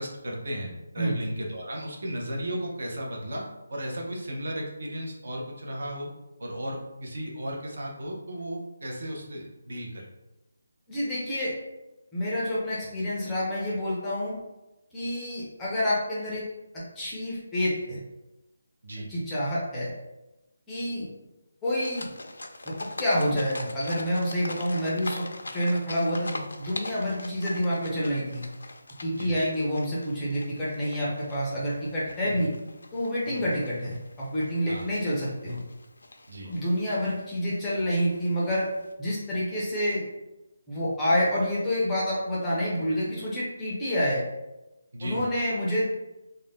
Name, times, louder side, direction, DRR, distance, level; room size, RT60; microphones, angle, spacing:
voice 1, 0.0-3.4 3.7-6.1 6.4-10.0 18.8-19.1 29.2-29.3 32.2-32.5 33.3-33.4 34.7-34.9 36.3-36.5 44.9-45.2, equal, 55° right, -1 dB, 0.6 m, -35 dB
voice 2, 10.9-11.5 12.1-14.4 14.9-16.4 17.0-18.0 19.1-19.9 20.7-21.1 21.6-22.1 23.0-25.2 25.5-28.4 29.0-32.5 32.9-35.6 36.4-38.7 39.0-40.0 40.7-44.2 45.0-45.8, equal, 5° left, -8 dB, 0.5 m, -28 dB
sound 1, 21.8-38.9, left 2 dB, 75° left, 0.4 m, -43 dB
2.4 x 2.1 x 3.4 m, 0.99 s
hypercardioid pair, 175°, 0 cm